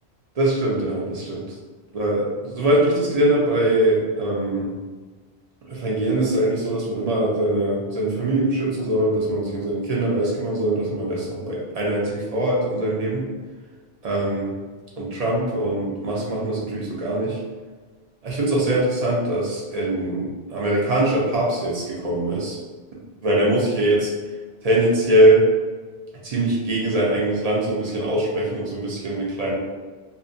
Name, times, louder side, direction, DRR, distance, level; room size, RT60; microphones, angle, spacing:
voice 1, 0.4-1.6 1.9-4.8 5.6-13.3 14.0-14.6 15.0-17.4 18.2-22.6 23.2-24.1 24.6-25.4 26.2-29.5, right 1 dB, 45° right, -3 dB, 0.6 m, -22 dB
2.5 x 2.1 x 2.5 m, 1.4 s
omnidirectional pair, 1.1 m